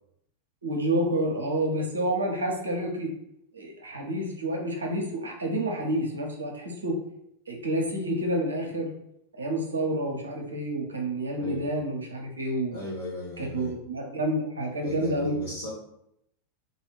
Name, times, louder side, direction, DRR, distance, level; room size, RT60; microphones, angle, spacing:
voice 1, 0.6-3.1 3.5-7.0 7.5-8.9 9.4-12.8 13.4-15.4, right 1 dB, 75° right, 1 dB, 0.6 m, -29 dB
voice 2, 11.4-11.7 12.7-13.8 14.8-15.7, left 1 dB, 70° left, -9 dB, 0.8 m, -36 dB
2.7 x 2.3 x 3.0 m, 0.77 s
figure-of-eight pair, 90°, 0 cm